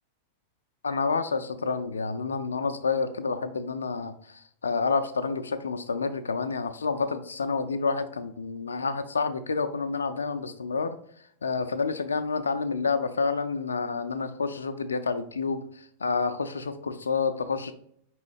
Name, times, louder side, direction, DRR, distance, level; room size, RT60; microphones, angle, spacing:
voice 1, 0.8-11.0 11.4-17.7, left 4 dB, 70° left, 10 dB, 0.3 m, -29 dB
5.3 x 3.0 x 3.2 m, 0.67 s
figure-of-eight pair, 90°, 0 cm